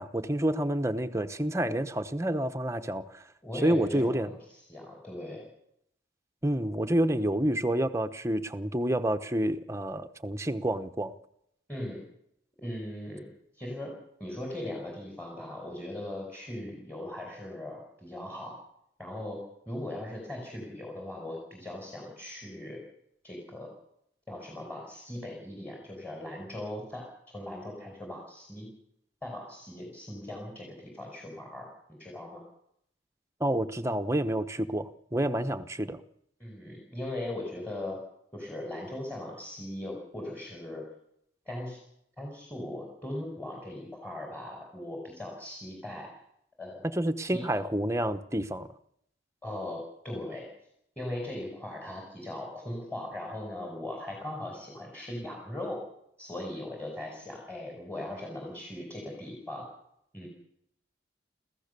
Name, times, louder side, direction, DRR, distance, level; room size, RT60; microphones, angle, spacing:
voice 1, 0.0-3.2 3.6-4.3 6.4-11.1 33.4-36.0 47.0-48.7, right 1 dB, 15° right, 8 dB, 1.0 m, -29 dB
voice 2, 3.4-5.4 11.7-12.0 12.6-13.3 13.5-13.9 14.2-18.6 19.0-19.4 19.7-22.8 23.2-23.7 24.3-27.1 27.3-28.7 29.2-32.4 36.4-38.0 38.3-40.8 41.5-41.8 42.2-46.1 46.6-47.0 47.3-47.4 49.4-50.5 51.0-55.8 56.2-59.7 60.1-60.3, left 1 dB, 10° left, -1 dB, 5.3 m, -39 dB
27.5 x 15.0 x 6.9 m, 0.73 s
head